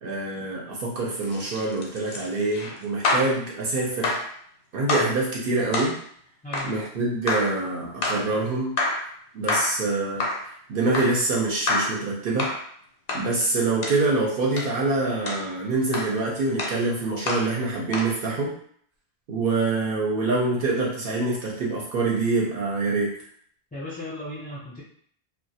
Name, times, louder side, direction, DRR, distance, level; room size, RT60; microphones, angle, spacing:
voice 1, 0.0-4.2 4.7-6.0 6.6-8.7 9.3-10.2 10.7-12.5 13.1-18.5 19.3-23.1, right 3 dB, 65° right, -3 dB, 0.7 m, -25 dB
sound 1, 1.2-3.4 4.0-4.3 4.9-5.2 5.7-6.0 6.5-6.8 7.3-7.6 8.0-8.3 8.8-9.1 9.5-9.8 10.2-10.5 10.9-11.2 11.7-12.0 12.4-12.6 13.1-13.3 13.8-14.0 14.6-14.7 15.3-15.5 15.9-16.2 16.6-16.8 17.3-17.5 17.9-18.1, left 2 dB, 85° left, 0.8 m, -27 dB
voice 2, 6.4-6.8 23.7-24.8, left 1 dB, 15° left, -8 dB, 0.3 m, -36 dB
2.3 x 2.1 x 2.7 m, 0.62 s
omnidirectional pair, 1.1 m